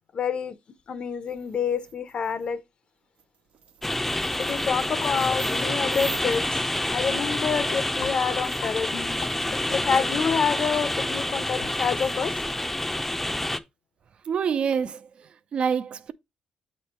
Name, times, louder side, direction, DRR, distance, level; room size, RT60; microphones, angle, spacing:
voice 1, 0.1-0.6 0.9-2.6 4.4-6.6 6.9-8.9 9.7-12.4, left 6 dB, 55° left, 0.7 m, -27 dB
sound 1, 1.3-2.5 3.2-7.0 7.6-10.2 11.4-12.5, right 7 dB, 85° right, 1.1 m, -47 dB
sound 2, 3.8-13.6, left 1 dB, 10° left, 0.6 m, -28 dB
sound 3, 4.3-6.7 7.4-7.5 7.7-11.7 11.9-12.3, left 8 dB, 85° left, 0.8 m, -41 dB
voice 2, 14.2-16.1, right 7 dB, 55° right, 0.5 m, -27 dB
8.6 x 3.2 x 4.3 m
cardioid pair, 100°, 2 cm